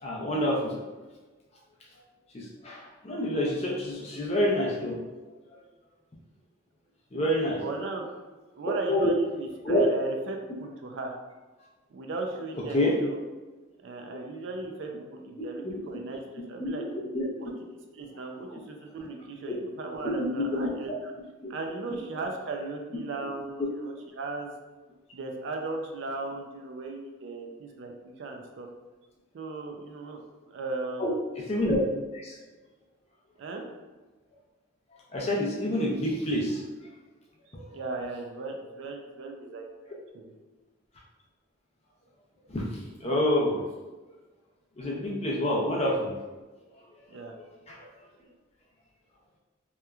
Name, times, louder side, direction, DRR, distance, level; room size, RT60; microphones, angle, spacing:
voice 1, 0.0-0.7 2.3-5.0 7.1-7.6 8.9-9.1 9.6-9.9 12.7-12.9 16.6-16.7 17.1-17.3 20.0-20.2 20.5-20.7 21.4-21.5 31.0-31.1 31.4-31.8 32.2-32.4 35.1-36.6 37.5-37.6 42.5-43.6 44.8-46.1 47.7-47.8, left 1 dB, 30° left, -3 dB, 0.4 m, -27 dB
voice 2, 7.6-8.1 8.5-11.2 11.9-13.2 13.8-16.8 17.4-17.5 17.9-21.1 21.5-24.5 25.1-28.7 29.3-30.2 30.5-31.1 33.4-33.6 37.5-40.3 47.1-47.4, right 3 dB, 60° right, 2 dB, 0.3 m, -37 dB
2.9 x 2.2 x 2.3 m, 1.2 s
head